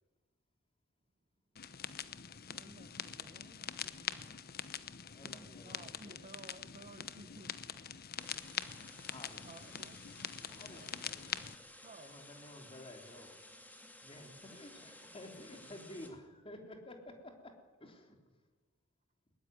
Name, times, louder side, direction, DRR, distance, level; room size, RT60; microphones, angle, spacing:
sound 1, 1.6-11.6, left 8 dB, 50° left, 1.0 m, -44 dB
voice 1, 2.5-4.4 5.2-7.5 9.4-10.1 10.7-11.2 11.8-12.1 16.0-16.1, right 2 dB, 35° right, 12 dB, 0.9 m, -56 dB
voice 2, 5.1-6.2 9.1-9.5 10.5-11.4 12.0-13.5 14.0-17.5 17.8-18.1, left 1 dB, 25° left, 4 dB, 3.5 m, -52 dB
sound 2, 8.2-16.1, left 1 dB, 10° left, 2.5 m, -55 dB
21.0 x 18.5 x 9.5 m, 1.3 s
head